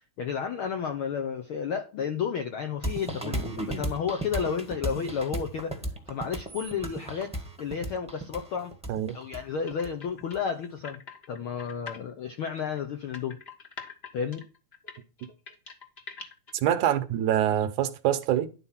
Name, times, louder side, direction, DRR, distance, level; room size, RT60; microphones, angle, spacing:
voice 1, 0.2-5.7 6.1-8.7 9.1-11.0 11.3-13.4 14.1-14.4, left 6 dB, 75° left, 1.2 m, -32 dB
sound 1, 2.8-10.4, right 1 dB, 5° right, 0.8 m, -35 dB
sound 2, 9.6-12.0 12.4-16.7, left 5 dB, 40° left, 0.8 m, -44 dB
voice 2, 16.5-18.5, right 11 dB, 80° right, 2.3 m, -25 dB
11.5 x 4.3 x 5.7 m
omnidirectional pair, 3.5 m